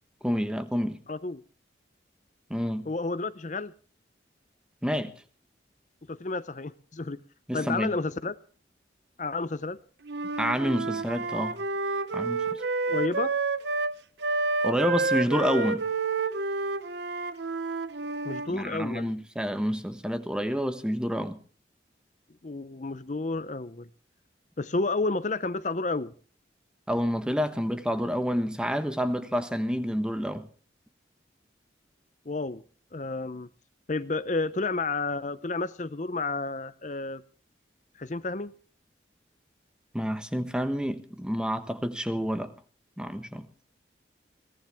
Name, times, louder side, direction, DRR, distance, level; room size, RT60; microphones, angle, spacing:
voice 1, 0.2-1.0 2.5-2.9 4.8-5.1 7.5-7.9 10.4-11.6 12.1-12.6 14.6-15.8 18.5-21.4 26.9-30.5 39.9-42.5 43.0-43.5, equal, 5° right, 1.2 m, -28 dB
voice 2, 1.1-1.4 2.9-3.7 6.1-7.2 7.5-8.4 9.2-9.8 12.9-13.3 18.2-19.1 22.4-23.9 24.6-26.1 32.3-32.6 32.9-33.5 33.9-37.2 38.0-38.5, left 3 dB, 40° left, 0.7 m, -31 dB
Wind instrument woodwind instrument, 10.0-13.9 14.2-18.5, right 3 dB, 70° right, 1.0 m, -29 dB
22.0 x 18.0 x 3.5 m
head